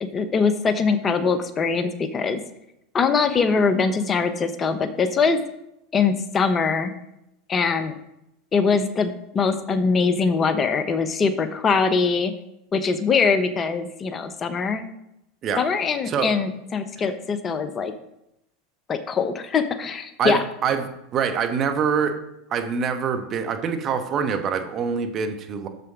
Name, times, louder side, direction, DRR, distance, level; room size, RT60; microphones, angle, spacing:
voice 1, 0.0-2.4 2.9-5.4 5.9-6.9 7.5-7.9 8.5-12.3 12.7-14.8 15.6-17.9 18.9-20.4, left 5 dB, 30° left, 11 dB, 0.7 m, -22 dB
voice 2, 20.2-22.1 22.5-25.7, right 6 dB, 40° right, 7 dB, 1.1 m, -25 dB
6.9 x 6.8 x 4.9 m, 0.85 s
hypercardioid pair, 85°, 0 cm